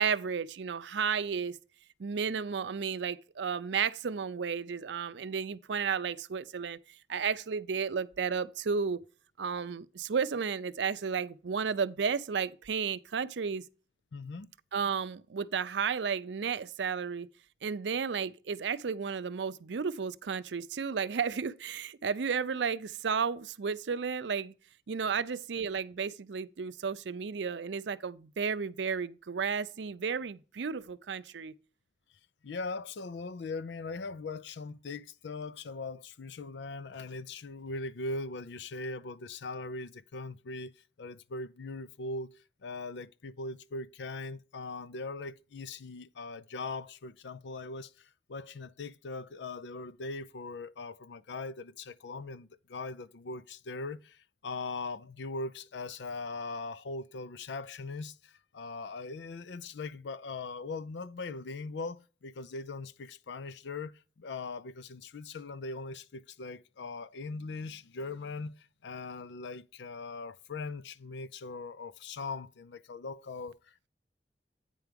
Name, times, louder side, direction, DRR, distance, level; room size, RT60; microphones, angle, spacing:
voice 1, 0.0-1.6 2.0-6.8 7.1-9.0 9.4-13.6 14.7-17.3 17.6-24.5 24.9-31.5, right 6 dB, 80° right, 0.5 m, -33 dB
voice 2, 14.1-14.5 32.4-40.7 41.0-42.3 42.6-73.9, left 3 dB, 80° left, 0.5 m, -40 dB
9.0 x 4.7 x 5.1 m
head